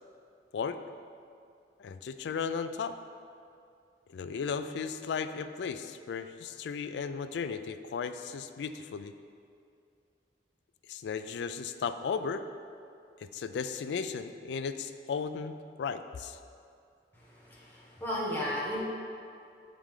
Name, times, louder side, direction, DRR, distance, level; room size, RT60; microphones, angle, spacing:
voice 1, 1.8-3.0 4.1-9.1 10.9-12.4 13.2-16.4, left 6 dB, 80° left, 10 dB, 0.3 m, -35 dB
voice 2, 17.1-18.8, left 1 dB, 10° left, -7 dB, 1.2 m, -35 dB
7.3 x 5.0 x 3.7 m, 2.5 s
head